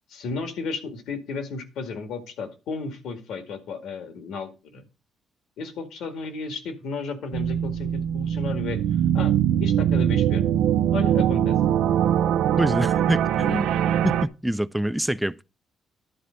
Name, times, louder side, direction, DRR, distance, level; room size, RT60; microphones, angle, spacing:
voice 1, 0.1-4.8 5.6-8.8 9.1-9.3 9.6-10.4 10.9-11.6, left 4 dB, 80° left, 1.9 m, -33 dB
sound 1, 7.3-14.3, right 10 dB, 90° right, 0.5 m, -22 dB
voice 2, 12.6-13.7 14.0-15.4, equal, 5° right, 0.4 m, -26 dB
11.0 x 4.2 x 6.2 m
cardioid pair, 90°, 0 cm